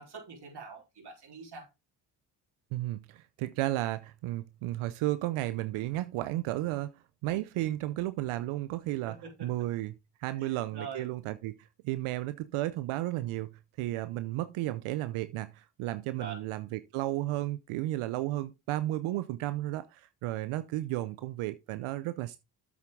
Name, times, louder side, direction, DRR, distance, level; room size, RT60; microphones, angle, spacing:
voice 1, 0.0-1.7 9.0-9.5 10.3-11.1 16.2-16.5, right 5 dB, 50° right, 3.9 m, -44 dB
voice 2, 2.7-9.9 10.2-13.5 13.8-22.4, right 16 dB, 75° right, 0.7 m, -33 dB
8.2 x 7.3 x 3.6 m
supercardioid pair, 50°, 50 cm